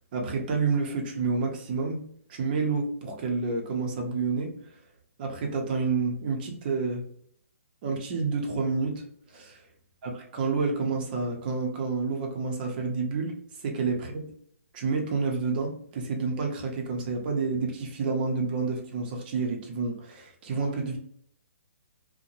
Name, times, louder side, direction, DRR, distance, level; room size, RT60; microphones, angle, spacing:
voice 1, 0.1-2.0 2.3-4.6 5.2-7.0 7.8-9.6 10.0-14.3 14.7-21.0, right 4 dB, 40° right, 2 dB, 0.7 m, -29 dB
2.6 x 2.1 x 2.9 m, 0.64 s
hypercardioid pair, 150°, 8 cm